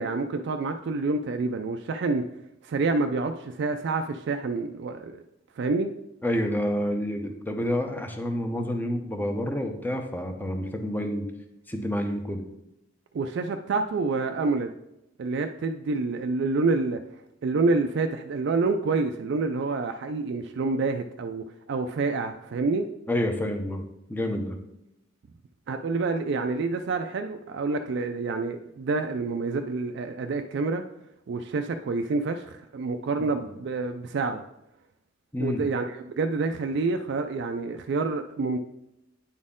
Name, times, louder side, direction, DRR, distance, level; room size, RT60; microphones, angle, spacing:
voice 1, 0.0-2.2 2.6-5.2 5.6-5.9 13.1-14.7 15.2-17.0 17.4-22.9 25.7-30.8 31.3-34.4 35.4-38.6, right 3 dB, 60° right, 6 dB, 0.3 m, -28 dB
voice 2, 6.2-11.3 11.7-12.4 23.1-23.8 24.1-24.6 33.4-33.5 35.3-35.6, left 1 dB, 10° left, 5 dB, 0.7 m, -28 dB
9.3 x 4.2 x 3.7 m, 0.85 s
head